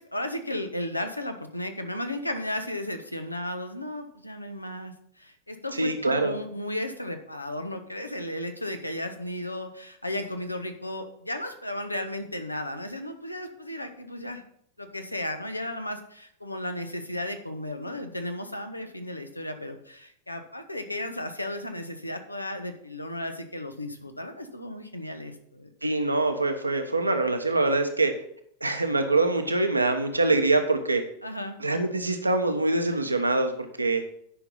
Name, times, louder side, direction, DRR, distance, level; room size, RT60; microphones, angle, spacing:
voice 1, 0.0-14.4 14.8-25.7 31.2-31.6, left 1 dB, 85° left, 7 dB, 1.1 m, -34 dB
voice 2, 5.8-6.3 25.8-28.1 28.6-31.0 31.6-34.0, right 2 dB, 80° right, 6 dB, 1.1 m, -24 dB
10.0 x 5.8 x 5.6 m, 0.68 s
figure-of-eight pair, 90°, 0 cm